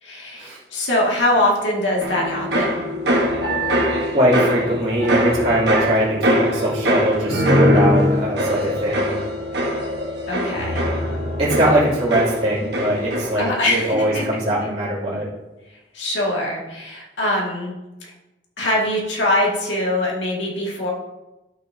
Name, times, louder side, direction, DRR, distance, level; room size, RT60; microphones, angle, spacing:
voice 1, 0.0-2.8 10.3-10.8 13.4-14.2 15.9-17.8 18.0-18.1 18.6-20.9, left 1 dB, 80° left, -3 dB, 2.1 m, -22 dB
sound 1, 2.0-13.6 13.9-14.4, equal, 65° right, 1.2 m, -22 dB
voice 2, 4.1-9.2 11.4-15.3, right 1 dB, 35° right, -10 dB, 2.8 m, -21 dB
11.5 x 6.3 x 2.7 m, 1.0 s
head